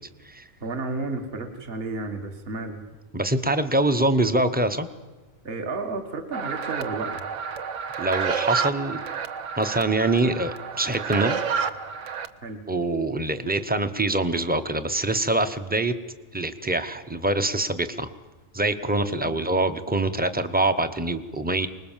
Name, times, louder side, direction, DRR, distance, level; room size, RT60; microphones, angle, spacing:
voice 1, 0.6-2.8 5.4-7.2 12.4-12.6, right 3 dB, 45° right, 5 dB, 1.8 m, -32 dB
voice 2, 3.1-4.9 8.0-9.0 9.6-11.4 12.7-15.9 16.3-18.1 18.5-21.7, right 2 dB, 10° right, 9 dB, 0.8 m, -24 dB
sound 1, 6.3-12.3, right 6 dB, 65° right, 1.3 m, -30 dB
25.0 x 20.5 x 7.4 m, 1.2 s
omnidirectional pair, 1.4 m